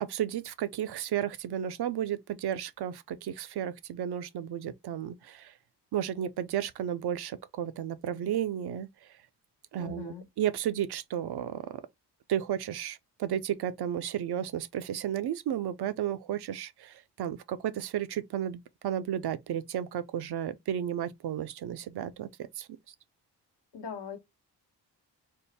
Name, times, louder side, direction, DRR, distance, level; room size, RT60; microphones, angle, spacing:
voice 1, 0.0-5.5 5.9-9.1 9.7-11.8 12.3-22.7, right 10 dB, 65° right, 0.6 m, -33 dB
voice 2, 9.8-10.2 23.7-24.2, left 7 dB, 75° left, 1.0 m, -40 dB
3.6 x 2.1 x 4.0 m
cardioid pair, 60°, 42 cm